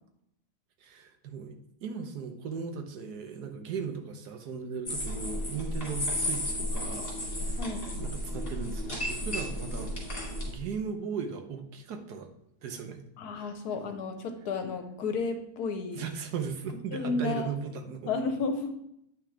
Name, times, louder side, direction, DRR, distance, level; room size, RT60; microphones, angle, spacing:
voice 1, 0.8-7.6 8.0-9.9 10.4-12.3 12.6-13.0 13.3-13.5 15.9-18.1, right 6 dB, 85° right, 6 dB, 1.5 m, -37 dB
sound 1, 4.9-10.5, left 1 dB, 35° left, 2.6 m, -33 dB
voice 2, 7.6-7.9 13.2-16.0 16.9-17.5 18.1-18.7, left 4 dB, 75° left, 7 dB, 1.4 m, -32 dB
8.8 x 6.0 x 3.3 m, 0.78 s
omnidirectional pair, 1.7 m